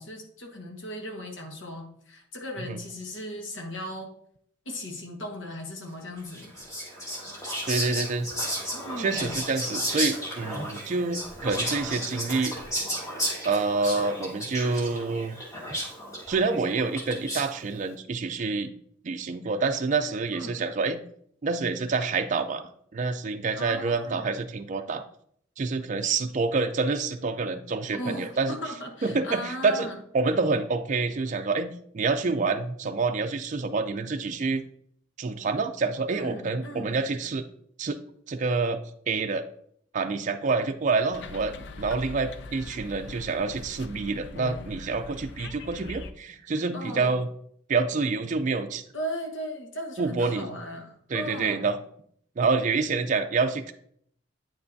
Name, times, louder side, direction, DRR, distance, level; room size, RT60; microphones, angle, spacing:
voice 1, 0.0-4.1 4.6-6.5 7.2-7.3 8.7-9.3 20.3-20.6 23.5-24.3 27.9-30.0 36.1-37.0 46.7-47.2 48.9-51.7, equal, 80° left, 2 dB, 1.4 m, -37 dB
Whispering, 6.3-17.6, equal, 15° left, 1.5 m, -33 dB
voice 2, 7.7-8.3 9.0-12.6 13.4-15.4 16.3-18.7 19.0-21.0 21.4-25.0 25.6-28.6 29.0-29.9 30.1-34.6 35.2-37.4 37.8-38.0 38.3-38.8 39.1-39.5 39.9-47.3 47.7-48.8 50.0-50.6 51.1-51.8 52.4-53.7, right 4 dB, 40° right, 6 dB, 0.4 m, -27 dB
sound 1, 41.1-46.1, left 3 dB, 65° left, 0.5 m, -41 dB
8.8 x 5.6 x 2.6 m, 0.66 s
head